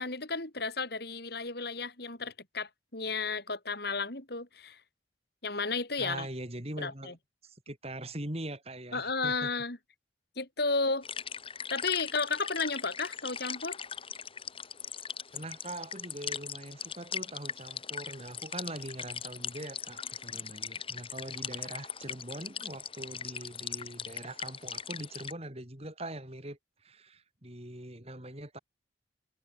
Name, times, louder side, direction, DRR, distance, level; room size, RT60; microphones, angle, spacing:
voice 1, 0.0-4.8 5.4-6.3 6.8-7.1 8.9-9.8 10.4-11.1 11.7-13.8, left 4 dB, 55° left, 3.5 m, -33 dB
voice 2, 6.0-7.2 7.4-9.5 15.3-28.6, right 1 dB, 30° right, 4.5 m, -42 dB
sound 1, 11.0-25.3, left 7 dB, 30° left, 4.2 m, -40 dB
head